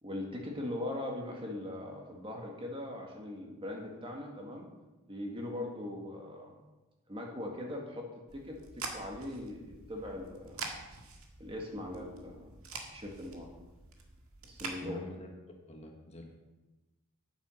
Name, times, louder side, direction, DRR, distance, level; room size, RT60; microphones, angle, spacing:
voice 1, 0.0-4.7 5.1-6.6 7.1-10.7 11.4-12.5 12.9-13.5 14.4-15.0, left 1 dB, 25° right, 1 dB, 1.7 m, -40 dB
sound 1, 8.3-14.8, right 4 dB, 80° right, 1.7 m, -46 dB
voice 2, 14.8-15.3 15.7-16.4, left 1 dB, 30° left, 2 dB, 1.5 m, -46 dB
9.3 x 9.1 x 6.4 m, 1.1 s
head